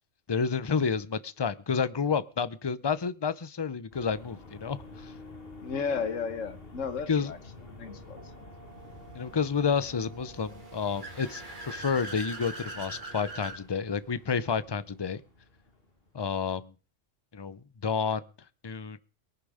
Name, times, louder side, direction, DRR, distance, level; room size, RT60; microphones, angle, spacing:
voice 1, 0.3-5.1 7.1-7.3 9.1-15.2 16.1-16.7 17.3-18.2 18.6-19.0, left 6 dB, 25° left, 0.6 m, -30 dB
sound 1, 3.9-16.2, left 2 dB, 50° left, 2.4 m, -51 dB
sound 2, 4.0-13.4, equal, 65° right, 3.0 m, -53 dB
voice 2, 5.6-7.4 7.7-8.3, left 5 dB, 75° left, 1.6 m, -33 dB
Car / Accelerating revving vroom, 10.4-13.6, right 2 dB, 40° right, 2.9 m, -41 dB
22.5 x 10.5 x 5.0 m
omnidirectional pair, 1.3 m